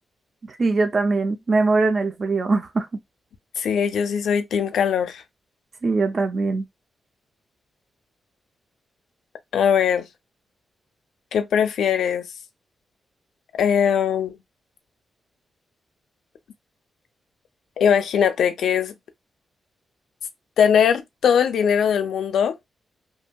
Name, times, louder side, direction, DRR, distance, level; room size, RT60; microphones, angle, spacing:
voice 1, 0.5-2.9 5.8-6.6, right 3 dB, 35° right, 0.4 m, -21 dB
voice 2, 3.6-5.2 9.5-10.1 11.3-12.3 13.6-14.4 17.8-18.9 20.6-22.6, left 7 dB, 85° left, 0.4 m, -20 dB
2.7 x 2.7 x 2.2 m
wide cardioid pair, 150°, 0 cm